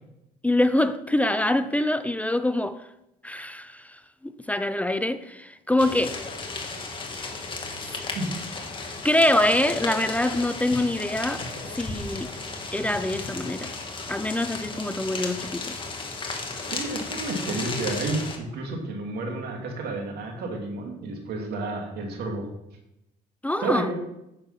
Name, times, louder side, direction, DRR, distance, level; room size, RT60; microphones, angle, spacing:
voice 1, 0.4-2.8 3.2-6.2 9.0-12.3 12.7-13.7 14.1-15.8 23.4-23.9, left 1 dB, 10° left, 0.5 m, -25 dB
sound 1, 5.8-18.4, left 3 dB, 30° left, 1.9 m, -34 dB
voice 2, 16.7-22.5 23.6-23.9, right 2 dB, 70° right, 2.6 m, -31 dB
9.8 x 7.1 x 5.8 m
cardioid pair, 110°, 17 cm